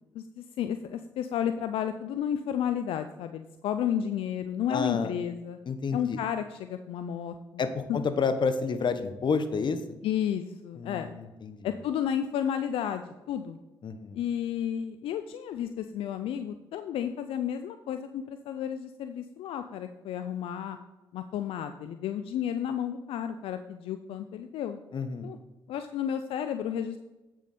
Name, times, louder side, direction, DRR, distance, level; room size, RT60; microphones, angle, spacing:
voice 1, 0.1-5.6 5.9-7.3 7.9-8.0 10.0-11.1 11.6-13.6 14.1-20.8 21.1-24.8 25.2-25.4 25.7-27.0, left 9 dB, 80° left, 9 dB, 0.4 m, -32 dB
voice 2, 4.7-5.1 5.7-6.2 7.6-10.0 10.8-11.7 13.8-14.2 24.9-25.3, left 5 dB, 55° left, 10 dB, 0.9 m, -30 dB
8.2 x 6.2 x 4.2 m, 1.0 s
supercardioid pair, 55°, 9 cm